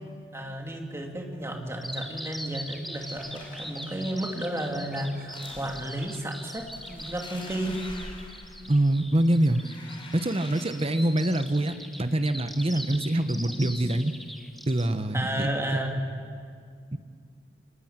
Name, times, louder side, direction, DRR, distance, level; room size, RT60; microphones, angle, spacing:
voice 1, 0.3-7.8 11.6-11.8 12.7-13.0 13.5-13.7 15.1-16.0, right 1 dB, 15° right, 1 dB, 2.8 m, -33 dB
Bird vocalization bird call bird song, 1.8-14.8, equal, ahead, 2.2 m, -41 dB
sound 1, 2.9-4.1 5.1-6.0 6.5-9.0 9.3-11.2, left 2 dB, 30° left, 4.8 m, -46 dB
voice 2, 8.7-9.6 10.1-14.1 14.7-15.5 16.9-17.0, right 1 dB, 30° right, 10 dB, 1.0 m, -25 dB
26.5 x 20.0 x 9.0 m, 2.2 s
head